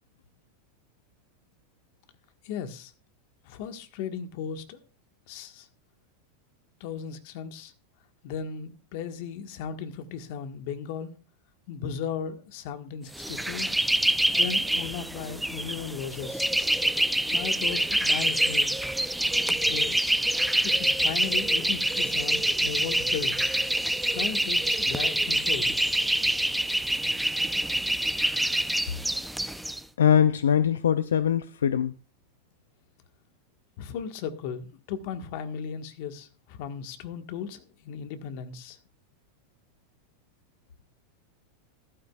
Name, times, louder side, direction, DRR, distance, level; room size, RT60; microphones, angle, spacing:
voice 1, 2.4-2.9 3.4-4.8 5.3-5.7 6.8-7.7 8.2-11.1 11.7-13.7 14.3-16.5 17.3-18.7 19.5-20.0 20.6-23.5 24.1-25.8 33.8-38.8, left 7 dB, 60° left, 1.6 m, -36 dB
sound 1, 13.1-29.8, right 1 dB, 5° right, 0.5 m, -26 dB
voice 2, 30.0-31.9, left 9 dB, 90° left, 0.5 m, -22 dB
14.0 x 12.5 x 2.4 m
hypercardioid pair, 110°, 0 cm